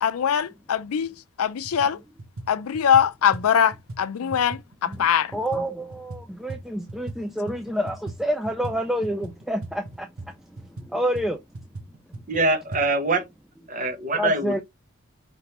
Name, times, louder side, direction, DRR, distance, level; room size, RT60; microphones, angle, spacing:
voice 1, 0.0-2.0 2.5-5.3, left 8 dB, 75° left, 0.4 m, -22 dB
sound 1, 1.0-1.1 1.6-1.9 2.2-7.2 7.5-12.8, right 2 dB, 75° right, 1.0 m, -39 dB
voice 2, 5.3-10.3 10.9-11.4 14.1-14.6, equal, ahead, 0.3 m, -28 dB
voice 3, 12.3-13.2 13.7-14.6, right 2 dB, 35° right, 1.2 m, -24 dB
4.9 x 3.3 x 2.9 m
head